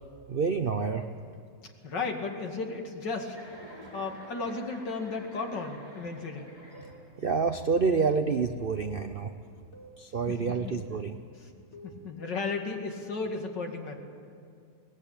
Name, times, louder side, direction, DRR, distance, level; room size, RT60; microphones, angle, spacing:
voice 1, 0.3-1.1 7.2-9.3 10.0-11.2, right 5 dB, 60° right, 7 dB, 0.5 m, -28 dB
voice 2, 1.8-3.4 3.9-6.5 10.3-10.7 11.4-11.5 11.8-14.0, left 4 dB, 85° left, 3 dB, 2.8 m, -34 dB
Chuckle chortle, 3.3-7.3, equal, 25° right, 5.1 m, -50 dB
sound 1, 6.7-7.0 7.7-8.0 8.7-9.0 9.7-10.0 10.7-11.0 11.7-12.0, right 1 dB, 40° left, 2.6 m, -49 dB
22.0 x 19.0 x 8.6 m, 2.3 s
omnidirectional pair, 1.9 m